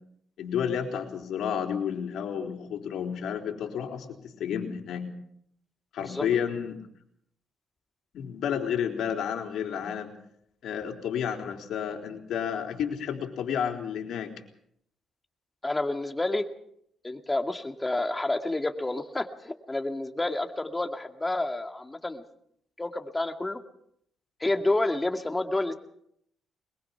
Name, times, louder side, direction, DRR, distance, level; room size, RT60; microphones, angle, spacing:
voice 1, 0.4-5.1 5.9-6.8 8.1-10.1 10.6-14.3, left 8 dB, 80° left, 3 dB, 3.9 m, -31 dB
voice 2, 15.6-16.4 17.0-22.2 22.8-23.6 24.4-25.7, left 2 dB, 15° left, 6 dB, 2.3 m, -29 dB
22.5 x 21.0 x 5.9 m, 0.70 s
cardioid pair, 80°, 0 cm